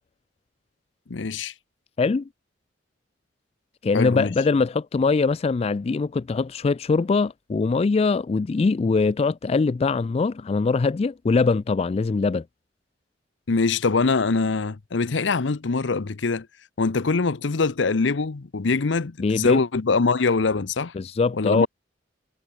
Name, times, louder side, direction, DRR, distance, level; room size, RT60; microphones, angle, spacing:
voice 1, 1.1-1.5 3.9-4.3 13.5-16.5 16.8-20.9 21.3-21.7, left 4 dB, 75° left, 0.7 m, -23 dB
voice 2, 2.0-2.3 3.8-12.4 19.2-19.6 20.9-21.7, left 4 dB, 35° left, 0.3 m, -22 dB
head